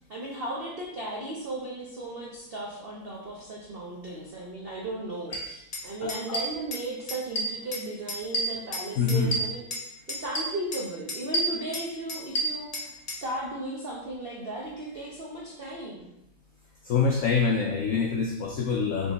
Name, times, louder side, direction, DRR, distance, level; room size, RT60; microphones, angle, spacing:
voice 1, 0.1-16.1, right 1 dB, 85° right, -4 dB, 0.5 m, -36 dB
sound 1, 5.3-5.4 5.7-5.8 6.1-6.8 7.1-7.8 8.1-9.8 10.1-10.8 11.1-13.2, right 1 dB, 55° left, 0.4 m, -30 dB
voice 2, 6.0-6.4 9.0-9.3 16.8-19.1, left 5 dB, 90° left, 1 dB, 0.7 m, -26 dB
3.8 x 3.5 x 3.9 m, 0.85 s
omnidirectional pair, 2.0 m